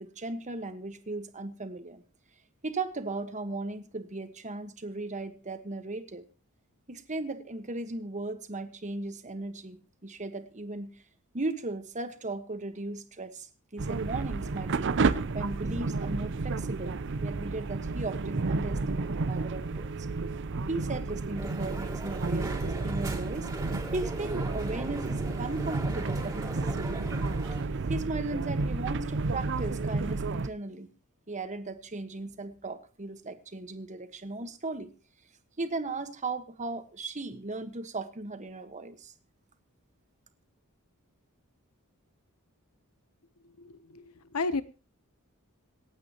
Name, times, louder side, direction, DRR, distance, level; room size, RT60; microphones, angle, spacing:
voice 1, 0.0-2.0 2.6-6.2 6.9-10.9 11.3-13.5 13.7-15.0 15.3-19.9 20.7-23.5 23.9-27.0 27.9-30.9 31.3-34.9 35.6-39.1, right 2 dB, 35° right, 9 dB, 1.4 m, -37 dB
sound 1, 13.8-30.5, right 3 dB, 55° right, 0.6 m, -31 dB
Crowd, 21.4-27.6, right 1 dB, 15° right, 2.6 m, -40 dB
voice 2, 43.6-44.6, left 3 dB, 75° left, 14 dB, 0.9 m, -33 dB
26.5 x 8.9 x 2.9 m, 0.33 s
head